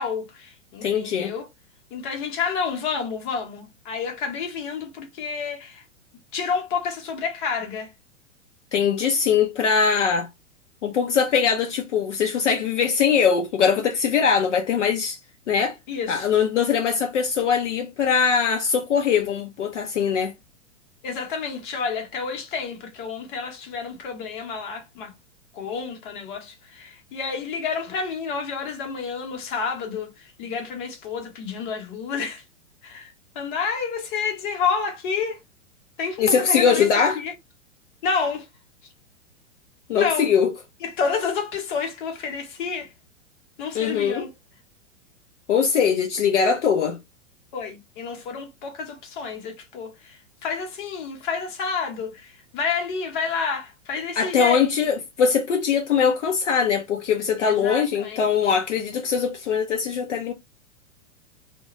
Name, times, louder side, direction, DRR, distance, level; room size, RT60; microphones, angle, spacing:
voice 1, 0.0-1.5 1.9-5.8 6.3-7.9 15.9-16.3 21.0-25.1 25.5-32.4 32.8-35.4 36.0-37.3 38.0-38.5 38.8-38.9 39.9-40.3 40.8-42.9 43.6-44.3 47.5-54.7 57.4-58.2, left 5 dB, 40° left, 0.8 m, -29 dB
voice 2, 0.8-1.3 8.7-10.3 10.8-15.2 15.5-15.8 16.1-20.3 36.2-37.2 39.9-40.5 43.8-44.3 45.5-47.0 54.2-60.3, left 6 dB, 65° left, 0.5 m, -21 dB
2.2 x 2.2 x 2.9 m
figure-of-eight pair, 105°, 38 cm